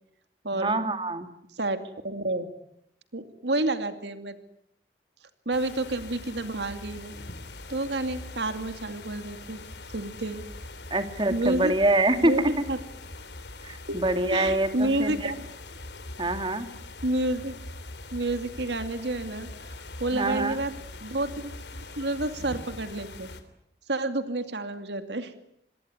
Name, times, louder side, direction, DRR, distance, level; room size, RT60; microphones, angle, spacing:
voice 1, 0.5-1.3 10.9-12.5 13.6-15.3 16.2-16.7 20.1-20.6, right 2 dB, 30° right, 8 dB, 2.3 m, -25 dB
voice 2, 1.6-2.5 3.1-4.4 5.5-7.1 7.7-9.6 9.9-10.4 11.3-11.7 12.2-12.8 13.9-15.4 17.0-17.5 18.1-19.5 20.0-20.7 21.0-23.3 23.9-25.3, right 2 dB, 80° right, 9 dB, 2.5 m, -29 dB
sound 1, 5.5-23.4, left 2 dB, 85° left, 3.2 m, -42 dB
27.0 x 22.0 x 9.5 m, 0.74 s
head